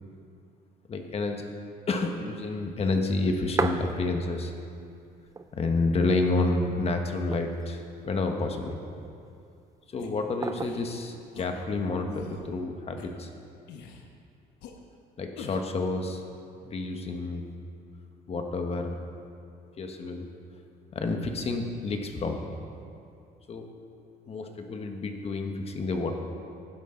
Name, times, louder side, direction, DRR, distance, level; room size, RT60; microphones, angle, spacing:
voice 1, 0.9-1.4 1.9-4.5 5.5-8.8 9.9-13.3 15.2-16.2 16.6-17.5 18.3-19.0 19.8-20.3 20.9-22.4 23.5-23.7 24.3-26.1, left 3 dB, 35° left, 4 dB, 1.4 m, -29 dB
sound 1, 3.1-4.6 4.9-5.0 5.2-6.0 6.5-6.6 7.1-7.9 8.6-9.2 10.4-11.0 12.1-12.6, right 4 dB, 20° right, 0.5 m, -34 dB
sound 2, 10.0-10.1 10.6-10.8 11.3-11.5 12.1-12.4 13.0-13.1 13.7-14.1 14.6-14.7 15.4-15.7, left 6 dB, 85° left, 1.2 m, -44 dB
16.5 x 10.5 x 3.9 m, 2.5 s
cardioid pair, 110°, 17 cm